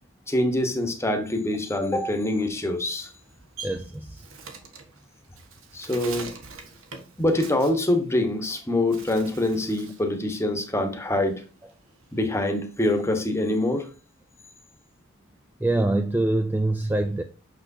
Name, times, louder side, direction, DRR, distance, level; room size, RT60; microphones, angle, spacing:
voice 1, 0.3-3.1 5.7-6.3 7.2-11.4 12.1-13.9, left 1 dB, 15° left, 1.0 m, -25 dB
Bird, 3.0-8.5 8.8-10.1 10.5-12.2, right 5 dB, 75° right, 1.4 m, -43 dB
voice 2, 3.6-4.2 15.6-17.2, right 2 dB, 10° right, 0.3 m, -24 dB
6.2 x 6.1 x 2.6 m
head